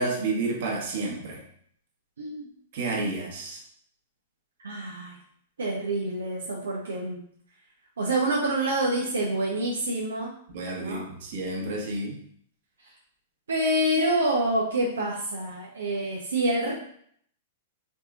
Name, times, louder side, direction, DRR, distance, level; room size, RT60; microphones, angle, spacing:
voice 1, 0.0-1.4 2.7-3.6 10.5-12.2, right 2 dB, 60° right, -1 dB, 1.3 m, -30 dB
voice 2, 2.2-2.5 4.6-5.2 5.6-7.2 8.0-10.3 10.8-11.1 13.5-16.7, right 1 dB, 90° right, -3 dB, 0.8 m, -27 dB
3.7 x 2.8 x 3.7 m, 0.64 s
hypercardioid pair, 120°, 0 cm